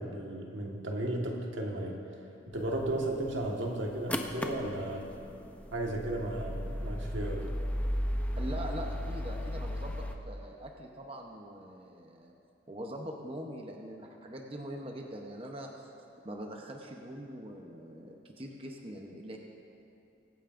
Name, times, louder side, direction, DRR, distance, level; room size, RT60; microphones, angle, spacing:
voice 1, 0.0-2.0 2.5-5.1 5.7-7.5, right 1 dB, 90° right, 0 dB, 1.5 m, -34 dB
sound 1, 2.5-10.2, equal, 10° left, 0.5 m, -36 dB
voice 2, 8.4-12.3 12.7-15.9 16.2-19.4, equal, 30° right, 1 dB, 0.8 m, -42 dB
23.0 x 9.3 x 2.6 m, 2.7 s
head